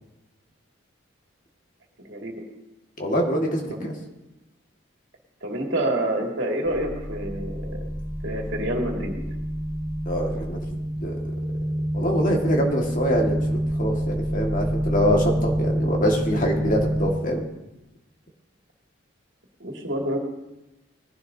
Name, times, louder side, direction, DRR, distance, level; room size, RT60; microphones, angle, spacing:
voice 1, 3.0-4.0 10.1-11.2 11.9-17.5, equal, 40° left, 1 dB, 1.8 m, -25 dB
voice 2, 5.4-7.8 8.2-9.2 19.6-20.2, right 1 dB, 65° right, 0 dB, 2.3 m, -27 dB
sound 1, 6.7-17.0, equal, 15° right, 5.1 m, -27 dB
20.0 x 11.0 x 2.7 m, 0.97 s
head